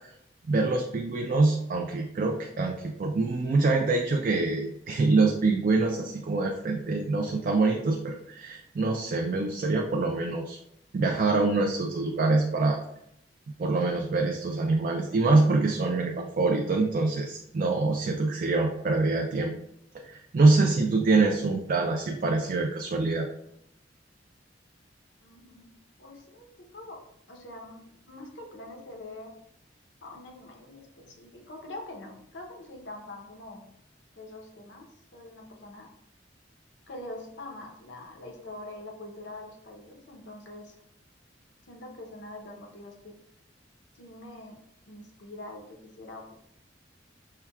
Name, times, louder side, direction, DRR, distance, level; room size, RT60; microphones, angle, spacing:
voice 1, 0.5-10.6 10.9-12.8 13.6-19.5 19.9-23.3, right 3 dB, 45° right, 2 dB, 0.3 m, -25 dB
voice 2, 25.2-25.7 26.0-27.0 27.3-29.3 30.0-33.6 34.2-34.8 35.1-35.9 36.9-40.7 41.7-43.1 43.9-44.6 44.9-46.4, left 2 dB, 70° left, 2 dB, 0.7 m, -44 dB
5.7 x 2.2 x 2.3 m, 0.75 s
head